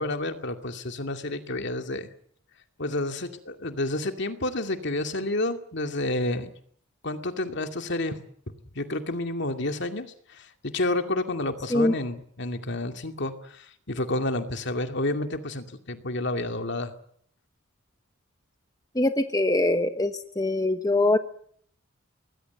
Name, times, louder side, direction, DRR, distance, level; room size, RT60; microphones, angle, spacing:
voice 1, 0.0-2.1 2.8-6.5 7.0-8.2 8.7-16.9, left 2 dB, 60° left, 6 dB, 2.4 m, -30 dB
voice 2, 18.9-21.2, left 2 dB, 15° left, 8 dB, 1.1 m, -23 dB
24.5 x 20.0 x 8.0 m, 0.63 s
head